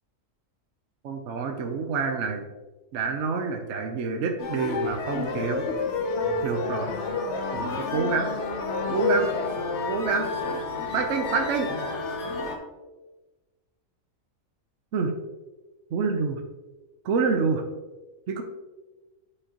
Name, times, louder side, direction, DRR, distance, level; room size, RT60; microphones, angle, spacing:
voice 1, 1.0-2.5 2.9-5.6 6.4-6.9 7.5-8.3 8.9-9.3 9.9-10.3 10.9-11.7 14.9-15.1 15.9-16.4 17.0-17.6 18.3-18.4, right 4 dB, 65° right, 4 dB, 1.0 m, -27 dB
sound 1, 4.4-12.6, left 3 dB, 65° left, 1.1 m, -29 dB
8.6 x 4.9 x 2.9 m, 1.2 s
omnidirectional pair, 1.4 m